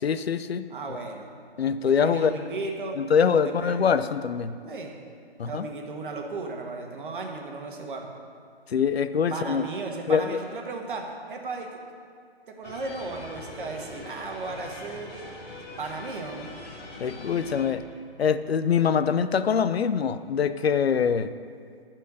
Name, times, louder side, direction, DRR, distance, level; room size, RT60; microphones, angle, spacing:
voice 1, 0.0-0.7 1.6-2.4 3.0-4.6 5.4-5.6 8.7-9.6 10.1-10.4 17.0-17.8 18.2-21.3, left 7 dB, 80° left, 12 dB, 0.6 m, -24 dB
voice 2, 0.7-1.3 1.8-3.0 3.4-3.9 4.6-4.9 5.4-8.1 9.3-11.7 12.6-15.1 15.8-16.5, right 3 dB, 55° right, 2 dB, 1.5 m, -35 dB
sound 1, 12.6-17.7, left 2 dB, 25° left, 1.3 m, -42 dB
13.0 x 4.6 x 6.3 m, 2.2 s
figure-of-eight pair, 140°, 30 cm